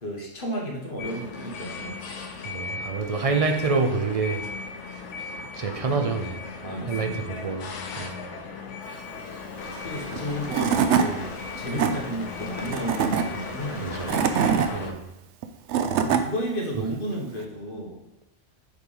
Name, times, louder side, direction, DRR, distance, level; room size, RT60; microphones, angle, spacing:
voice 1, 0.0-2.0 6.6-7.5 9.8-11.3 11.6-14.3 16.0-18.0, right 1 dB, 45° left, -2 dB, 1.5 m, -33 dB
sound 1, 1.0-14.9, left 4 dB, 75° left, 1.1 m, -37 dB
voice 2, 2.4-4.4 5.3-6.4 6.9-8.2 13.8-14.3 14.7-15.0, right 4 dB, 45° right, 5 dB, 0.4 m, -27 dB
sound 2, 9.5-14.7, left 2 dB, 30° left, 0.8 m, -42 dB
Tools / Wood, 10.2-10.3 10.5-11.1 11.5-11.9 12.7-13.2 13.9-14.7 15.4-16.2, right 7 dB, 75° right, 0.9 m, -22 dB
6.7 x 3.3 x 5.4 m, 0.93 s
omnidirectional pair, 1.2 m